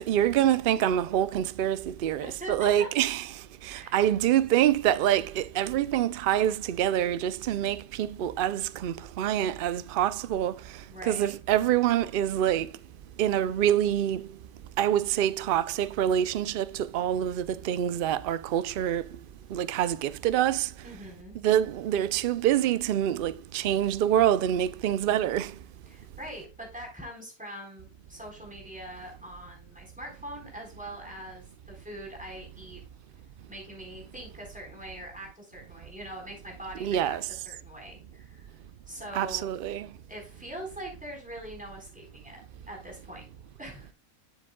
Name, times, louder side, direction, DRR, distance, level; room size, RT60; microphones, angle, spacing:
voice 1, 0.0-3.3 3.6-10.6 11.0-12.7 13.2-14.3 14.8-19.0 19.5-20.7 21.4-25.5 36.8-37.3 39.1-39.9, right 11 dB, 85° right, 0.4 m, -26 dB
voice 2, 2.2-2.9 3.7-4.0 10.9-11.3 20.8-21.3 25.9-32.8 33.5-38.5 38.9-39.5 40.1-42.4 42.7-43.2 43.6-43.9, equal, 5° right, 4.0 m, -42 dB
11.0 x 7.6 x 2.2 m
omnidirectional pair, 1.5 m